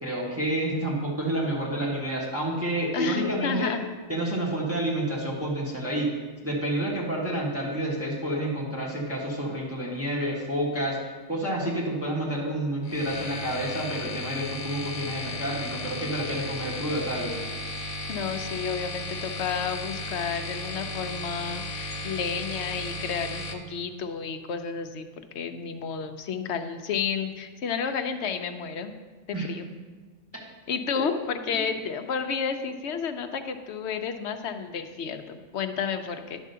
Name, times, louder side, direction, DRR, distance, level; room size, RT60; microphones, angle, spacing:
voice 1, 0.0-3.7 4.1-6.1 6.4-11.0 11.3-17.4 29.3-29.5 30.9-31.0, right 1 dB, 10° right, -5 dB, 1.4 m, -29 dB
voice 2, 2.9-3.8 18.1-28.9 29.3-29.7 30.7-36.4, left 6 dB, 70° left, 7 dB, 0.9 m, -31 dB
sound 1, 12.8-23.5, left 1 dB, 90° left, 1.2 m, -35 dB
10.5 x 3.6 x 6.8 m, 1.4 s
omnidirectional pair, 1.2 m